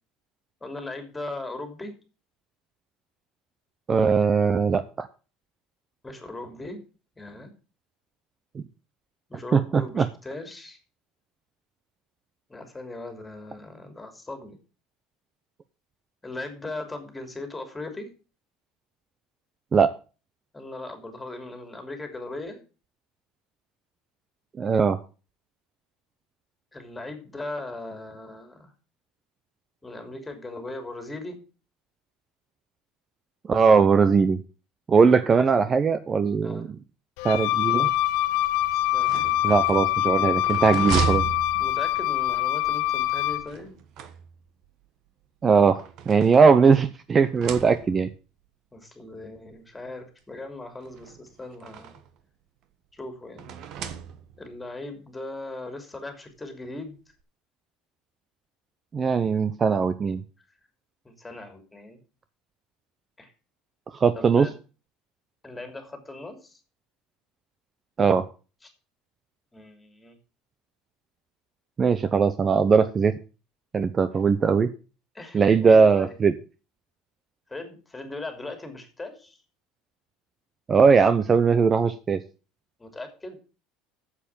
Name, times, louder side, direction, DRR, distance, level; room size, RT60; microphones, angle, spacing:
voice 1, 0.6-1.9 6.0-6.8 7.2-7.5 9.3-10.8 12.5-14.6 16.2-18.1 20.5-22.6 26.7-28.7 29.8-31.4 35.6-35.8 36.4-36.7 38.9-39.2 41.6-43.7 48.7-52.0 52.9-53.5 54.4-57.0 61.0-62.0 63.2-63.3 64.1-64.5 65.4-66.6 68.6-68.7 69.5-70.2 75.1-76.1 77.5-79.4 82.8-83.4, left 2 dB, 10° left, 6 dB, 3.0 m, -38 dB
voice 2, 3.9-5.1 8.5-8.6 9.5-10.0 19.7-19.9 24.6-25.0 33.5-34.4 34.9-36.7 37.2-37.9 39.4-41.2 45.4-48.1 58.9-60.2 64.0-64.5 68.0-68.3 71.8-73.2 73.7-74.7 75.3-76.3 80.7-82.2, right 5 dB, 30° right, 12 dB, 0.7 m, -20 dB
Wind instrument woodwind instrument, 37.2-43.5, left 14 dB, 75° left, 0.7 m, -24 dB
sound 1, 38.9-42.2 43.5-44.6 45.5-46.9 47.2-48.2 49.1-49.2 49.5-49.6 50.8-52.2 53.4-54.5, right 8 dB, 60° right, 1.4 m, -34 dB
8.4 x 7.4 x 7.2 m, 0.35 s
supercardioid pair, 110°, 0 cm